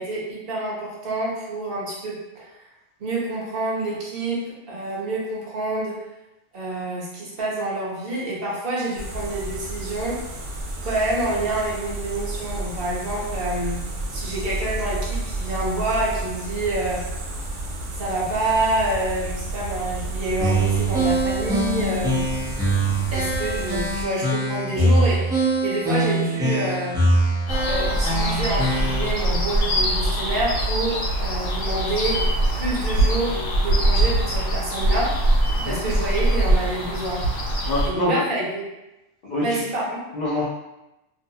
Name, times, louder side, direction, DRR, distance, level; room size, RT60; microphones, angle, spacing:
voice 1, 0.0-2.5 3.0-6.0 6.5-10.2 10.8-13.8 14.1-17.1 17.9-22.3 23.1-27.0 27.7-35.1 35.6-37.2 37.8-38.6 39.4-40.0, right 2 dB, 60° right, -5 dB, 0.9 m, -27 dB
sound 1, 9.0-24.0, right 1 dB, 85° right, 0.9 m, -31 dB
sound 2, 20.4-29.1, right 1 dB, 5° right, 0.4 m, -23 dB
sound 3, 27.5-37.9, right 1 dB, 85° left, 1.0 m, -22 dB
voice 2, 37.7-38.2 39.2-39.6 40.1-40.4, left 1 dB, 55° left, -9 dB, 0.7 m, -25 dB
2.6 x 2.1 x 2.6 m, 0.96 s
omnidirectional pair, 1.2 m